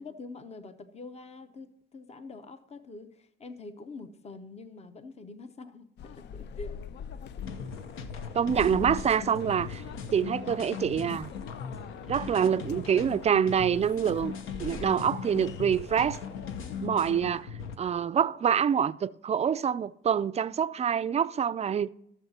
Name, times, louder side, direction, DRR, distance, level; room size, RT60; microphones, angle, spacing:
voice 1, 0.0-6.8, left 3 dB, 30° left, 0.8 m, -45 dB
sound 1, 6.0-16.9, left 8 dB, 60° left, 0.4 m, -43 dB
sound 2, 7.4-17.8, left 6 dB, 90° left, 0.9 m, -39 dB
voice 2, 8.3-9.8 10.1-11.3 12.1-14.3 14.6-16.2 16.8-17.5 17.8-21.9, right 8 dB, 35° right, 0.4 m, -26 dB
14.5 x 7.1 x 2.9 m
cardioid pair, 90°, 20 cm